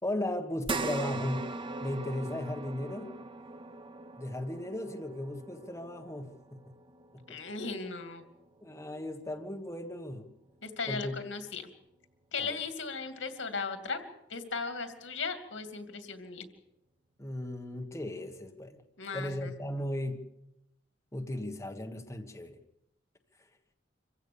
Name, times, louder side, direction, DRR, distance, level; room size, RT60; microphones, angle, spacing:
voice 1, 0.0-1.5 1.8-3.1 4.2-6.6 8.6-10.3 10.9-11.2 12.4-12.6 17.2-18.8 19.1-20.3 21.1-22.6, left 1 dB, 15° left, 3 dB, 1.5 m, -36 dB
sound 1, 0.6-9.3 9.7-9.8 11.3-11.4, right 3 dB, 25° right, 0.8 m, -41 dB
voice 2, 7.3-8.2 10.6-11.6 12.3-14.0 14.3-16.5 19.0-19.5, left 4 dB, 85° left, 8 dB, 2.5 m, -37 dB
26.0 x 15.5 x 7.0 m, 0.85 s
head